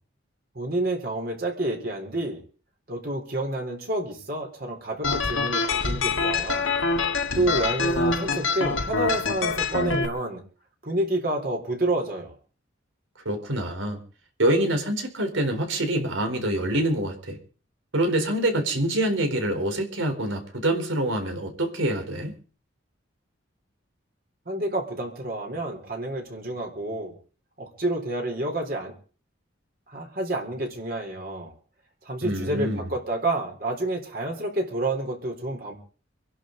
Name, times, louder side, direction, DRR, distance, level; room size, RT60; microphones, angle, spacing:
voice 1, 0.5-2.4 2.9-6.7 7.3-10.4 10.8-12.3 24.5-27.1 27.6-28.9 29.9-31.5 32.0-35.7, right 2 dB, 50° right, 2 dB, 4.0 m, -29 dB
sound 1, 5.0-10.1, left 4 dB, 90° left, 1.8 m, -25 dB
voice 2, 13.2-14.0 14.4-17.4 17.9-22.3 32.2-32.9, right 1 dB, 85° right, 5 dB, 4.1 m, -25 dB
26.0 x 11.0 x 4.0 m, 0.38 s
head